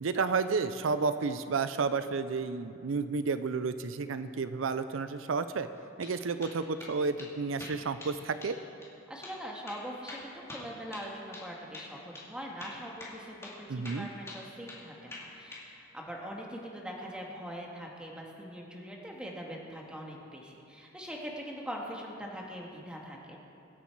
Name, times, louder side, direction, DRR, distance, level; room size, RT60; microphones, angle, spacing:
voice 1, 0.0-5.7 6.0-8.6 13.7-14.1, right 4 dB, 80° right, 11 dB, 0.5 m, -31 dB
sound 1, 5.7-6.1 6.4-6.9 7.2-7.3 7.6-8.2 8.4-8.6 8.8-8.9 9.2-9.4 9.7-11.5 11.7-11.9 12.1-12.3 12.6-13.2 13.4-13.6 13.8-14.8 15.1-15.7, left 2 dB, 15° left, 2.3 m, -45 dB
voice 2, 9.1-23.4, equal, 5° right, -1 dB, 1.7 m, -42 dB
24.0 x 8.3 x 4.6 m, 2.7 s
head